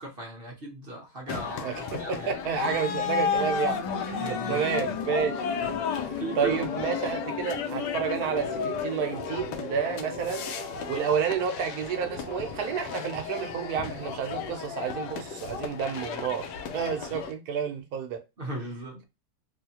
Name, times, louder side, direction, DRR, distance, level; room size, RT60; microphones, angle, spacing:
voice 1, 0.0-2.3 4.2-4.6 5.9-6.7 18.4-19.0, right 2 dB, 50° right, 0.7 m, -37 dB
sound 1, 1.3-17.3, left 6 dB, 75° left, 1.2 m, -34 dB
voice 2, 1.6-5.4 6.4-10.5 10.9-16.5 16.7-18.2, right 7 dB, 65° right, 1.1 m, -30 dB
sound 2, 2.4-14.2, left 4 dB, 45° left, 0.5 m, -38 dB
3.4 x 2.7 x 2.8 m
omnidirectional pair, 1.9 m